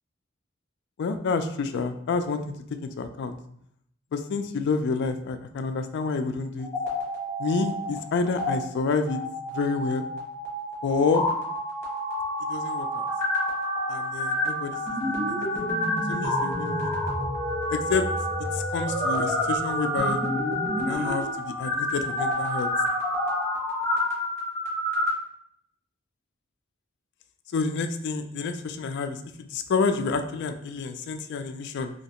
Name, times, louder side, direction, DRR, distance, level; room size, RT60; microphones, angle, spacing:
voice 1, 1.0-2.4 2.8-3.4 4.1-6.7 7.4-9.2 9.5-10.1 10.8-11.2 12.5-13.1 13.9-15.6 16.1-16.9 17.7-18.1 18.5-20.2 20.8-22.7 27.5-31.9, left 4 dB, 60° left, 8 dB, 0.3 m, -28 dB
sound 1, 6.6-8.0 8.2-8.5 9.1-25.1, left 1 dB, 10° left, 1.1 m, -28 dB
3.2 x 2.8 x 2.8 m, 0.71 s
head